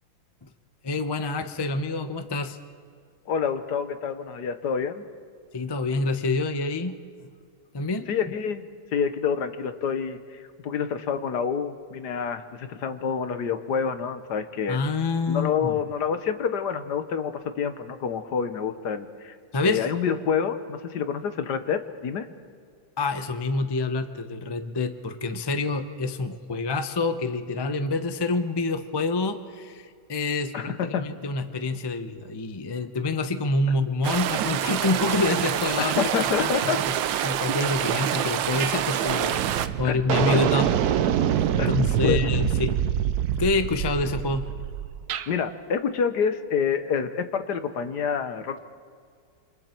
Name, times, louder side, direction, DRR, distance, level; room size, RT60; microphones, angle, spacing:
voice 1, 0.8-2.6 5.5-6.9 7.7-8.1 14.7-15.8 19.5-19.9 23.0-36.1 36.4-36.9 37.2-40.7 41.3-42.7 43.4-44.5, left 3 dB, 25° left, 9 dB, 0.5 m, -27 dB
voice 2, 3.3-5.0 8.1-8.6 8.9-14.8 15.3-19.4 19.6-22.3 30.5-31.0 35.8-36.8 39.8-40.0 40.3-40.4 41.6-42.4 45.3-48.6, left 6 dB, 65° left, 10 dB, 1.5 m, -28 dB
sound 1, 34.0-39.7, right 11 dB, 85° right, 1.5 m, -27 dB
sound 2, 38.6-38.8 39.1-45.3, right 10 dB, 65° right, 1.1 m, -25 dB
28.0 x 25.5 x 4.5 m, 2.1 s
omnidirectional pair, 2.0 m